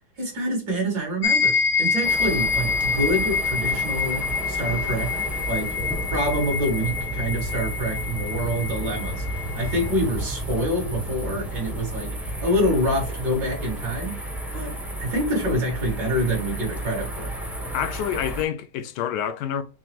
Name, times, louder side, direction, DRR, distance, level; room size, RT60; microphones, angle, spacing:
voice 1, 0.2-5.2 5.5-5.8 6.1-14.2 14.5-17.3, equal, 75° right, 2.5 m, -26 dB
sound 1, 1.2-9.9, left 5 dB, 65° left, 0.9 m, -26 dB
sound 2, 2.0-18.4, right 1 dB, ahead, 0.4 m, -32 dB
voice 2, 17.7-19.6, left 9 dB, 85° left, 1.2 m, -27 dB
6.0 x 2.0 x 3.0 m
omnidirectional pair, 1.8 m